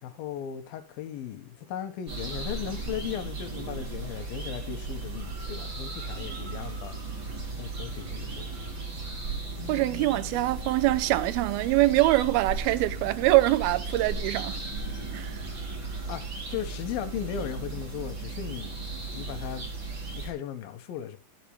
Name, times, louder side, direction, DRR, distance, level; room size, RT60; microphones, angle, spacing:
voice 1, 0.0-7.1 7.6-8.5 9.6-10.5 16.1-16.2 16.5-19.6 20.1-21.2, left 10 dB, 65° left, 2.9 m, -37 dB
sound 1, 2.1-20.3, right 3 dB, 30° right, 4.3 m, -36 dB
voice 2, 9.7-14.6 15.1-15.4, right 18 dB, 75° right, 2.5 m, -24 dB
19.5 x 7.6 x 3.4 m
omnidirectional pair, 4.9 m